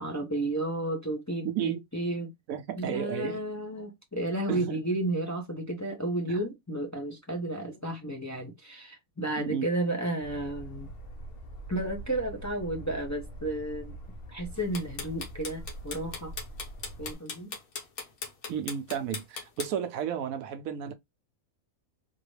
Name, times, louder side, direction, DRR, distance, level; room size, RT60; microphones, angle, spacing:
voice 1, 0.0-2.3 2.8-10.9 11.7-13.9 14.3-16.3 17.0-17.5, right 1 dB, 15° left, 0.8 m, -32 dB
voice 2, 1.4-1.8 2.5-3.4 4.5-4.8 6.3-6.4 9.4-9.7 18.5-20.9, right 9 dB, 80° right, 1.0 m, -33 dB
sound 1, 10.2-17.1, right 1 dB, 50° left, 0.9 m, -43 dB
sound 2, 14.6-19.7, left 5 dB, 80° left, 1.6 m, -37 dB
4.0 x 2.9 x 3.2 m
omnidirectional pair, 1.5 m